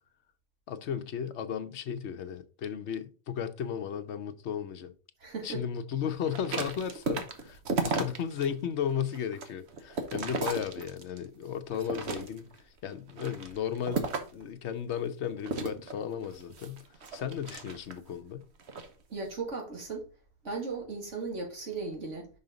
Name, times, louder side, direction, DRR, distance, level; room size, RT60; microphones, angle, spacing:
voice 1, 0.7-4.9 5.4-16.8 17.1-18.4, left 8 dB, 70° left, 1.0 m, -35 dB
voice 2, 5.2-5.6 19.1-20.0 20.4-22.3, right 4 dB, 85° right, 2.4 m, -36 dB
sound 1, 6.3-8.5 8.9-11.3 11.7-12.6 13.1-14.4 15.4-18.1 18.6-18.9, right 3 dB, 65° right, 1.2 m, -34 dB
5.6 x 5.5 x 3.9 m
omnidirectional pair, 1.2 m